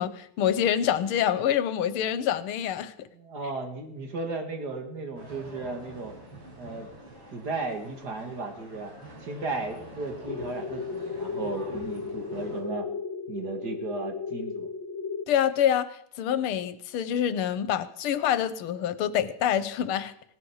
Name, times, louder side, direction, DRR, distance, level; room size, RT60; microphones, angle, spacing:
voice 1, 0.0-3.1 15.3-20.1, left 9 dB, 85° left, 15 dB, 1.8 m, -26 dB
voice 2, 3.0-6.1 6.6-6.9 7.3-8.9 9.2-12.9 13.3-14.7, right 3 dB, 50° right, 5 dB, 2.5 m, -35 dB
sound 1, 5.1-12.6, right 1 dB, 65° right, 5.9 m, -46 dB
sound 2, 10.3-15.2, left 5 dB, 60° left, 0.7 m, -35 dB
17.5 x 9.6 x 7.2 m, 0.69 s
omnidirectional pair, 2.3 m